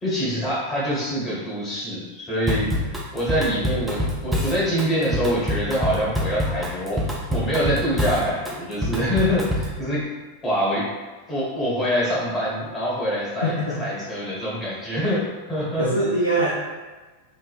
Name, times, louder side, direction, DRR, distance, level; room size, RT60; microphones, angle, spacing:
voice 1, 0.0-2.7 3.1-7.0 7.3-10.0 10.4-10.9 11.3-13.5 13.8-15.2 15.5-15.9, equal, 20° left, -7 dB, 1.1 m, -25 dB
Drum kit / Drum, 2.5-9.8, equal, 5° right, 0.5 m, -26 dB
voice 2, 13.4-14.1 15.8-16.5, right 1 dB, 90° left, -7 dB, 0.4 m, -23 dB
3.1 x 2.0 x 2.3 m, 1.3 s
figure-of-eight pair, 90°, 0 cm